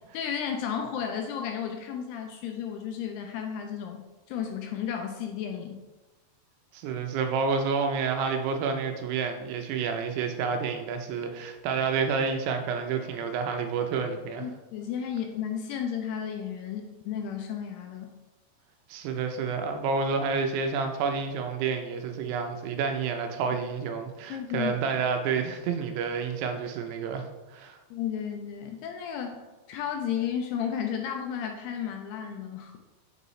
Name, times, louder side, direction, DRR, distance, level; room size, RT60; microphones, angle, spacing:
voice 1, 0.1-5.8 14.4-18.1 24.3-24.7 27.9-32.8, left 8 dB, 85° left, 4 dB, 2.4 m, -33 dB
voice 2, 6.7-14.5 18.9-27.8, right 5 dB, 80° right, 5 dB, 2.6 m, -29 dB
7.6 x 5.3 x 3.1 m, 1.1 s
omnidirectional pair, 5.0 m